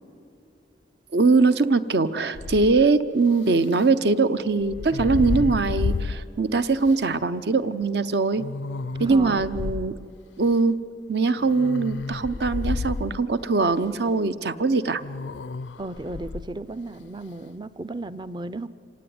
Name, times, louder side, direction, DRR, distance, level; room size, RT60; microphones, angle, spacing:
voice 1, 1.1-8.4 9.0-9.9 10.4-10.8 11.1-15.0, right 3 dB, 65° right, 13 dB, 0.7 m, -22 dB
sound 1, 2.3-2.9 4.6-6.3 6.9-7.0 8.4-9.9 11.3-13.2 15.0-16.5, left 3 dB, 85° left, 0.5 m, -30 dB
voice 2, 9.1-9.4 15.8-18.7, right 2 dB, 25° right, 13 dB, 0.5 m, -34 dB
26.0 x 17.0 x 9.5 m, 2.7 s
head